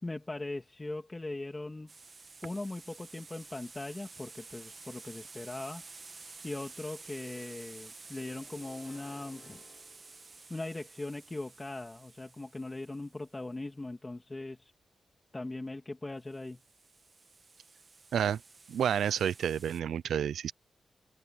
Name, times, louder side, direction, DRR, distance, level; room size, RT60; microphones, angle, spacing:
voice 1, 0.0-1.9 2.4-5.8 6.4-9.6 10.5-14.7 15.3-16.6, left 2 dB, 20° left, 2.8 m, -40 dB
sound 1, 1.9-13.3 16.3-19.8, right 4 dB, 40° right, 2.0 m, -52 dB
sound 2, 8.2-11.0, left 6 dB, 65° left, 2.2 m, -58 dB
voice 2, 18.7-20.5, right 9 dB, 90° right, 0.5 m, -30 dB
cardioid pair, 80°, 0 cm